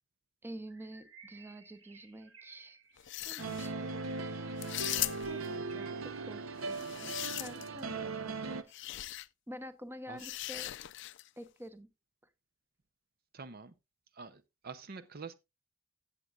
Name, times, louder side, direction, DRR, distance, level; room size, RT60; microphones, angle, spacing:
voice 1, 0.4-2.8 3.3-4.0 5.2-8.6 9.5-10.7 11.4-11.9, equal, 10° right, 0.8 m, -48 dB
Bird, 0.7-7.0, right 5 dB, 70° right, 2.1 m, -59 dB
sound 1, 3.0-3.7 4.6-5.5 6.6-7.8 8.7-9.3 10.2-11.3, left 16 dB, 60° left, 0.4 m, -39 dB
sound 2, 3.4-8.6, right 3 dB, 90° right, 0.9 m, -39 dB
voice 2, 13.3-13.7 14.1-15.3, right 4 dB, 45° right, 0.6 m, -46 dB
16.0 x 7.3 x 2.4 m
head